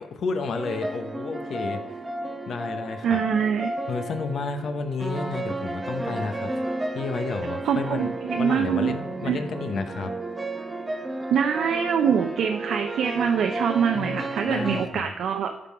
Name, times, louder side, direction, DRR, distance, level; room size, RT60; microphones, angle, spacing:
voice 1, 0.2-2.0 2.5-3.2 3.9-6.5 6.9-10.1 13.9-15.0, left 4 dB, 55° left, 7 dB, 0.9 m, -31 dB
sound 1, 0.5-14.9, right 2 dB, 15° right, 0.8 m, -32 dB
voice 2, 3.0-3.7 7.6-8.9 9.3-9.4 11.3-15.5, right 7 dB, 65° right, 4 dB, 0.5 m, -24 dB
11.5 x 3.8 x 4.7 m, 0.96 s
cardioid pair, 90°, 0 cm